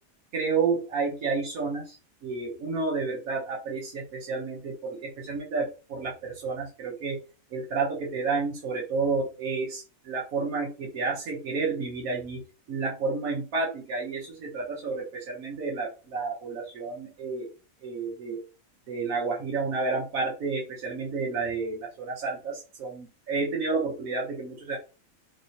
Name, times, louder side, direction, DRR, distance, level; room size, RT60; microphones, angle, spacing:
voice 1, 0.3-2.0 2.2-7.2 7.5-12.4 12.7-17.5 17.8-18.4 18.9-24.8, right 4 dB, 90° right, -3 dB, 1.4 m, -30 dB
3.5 x 3.2 x 2.7 m, 0.32 s
omnidirectional pair, 1.4 m